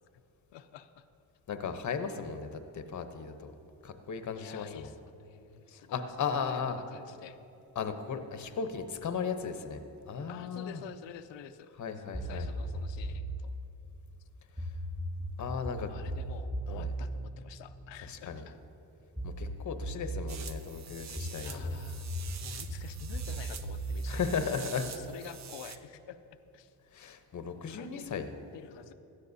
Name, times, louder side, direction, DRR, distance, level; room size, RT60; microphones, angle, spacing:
voice 1, 0.5-1.1 4.3-7.4 10.3-11.7 12.0-13.5 15.7-18.6 21.4-22.1 22.4-26.2 26.5-26.7 27.5-28.0 28.5-28.9, left 9 dB, 80° left, 11 dB, 0.7 m, -49 dB
voice 2, 1.5-3.5 3.8-4.9 5.7-6.8 7.8-10.8 11.8-12.5 14.6-14.7 15.4-15.9 16.7-16.9 18.0-18.4 19.2-21.8 24.1-24.9 26.9-28.3, left 6 dB, 40° left, 8 dB, 0.9 m, -36 dB
sound 1, 12.1-13.4 14.6-18.3 19.2-20.4 21.2-25.1, right 1 dB, 15° right, 1.7 m, -37 dB
sound 2, 20.3-25.8, right 7 dB, 40° right, 0.6 m, -46 dB
16.5 x 13.0 x 2.7 m, 2.8 s
cardioid pair, 105°, 44 cm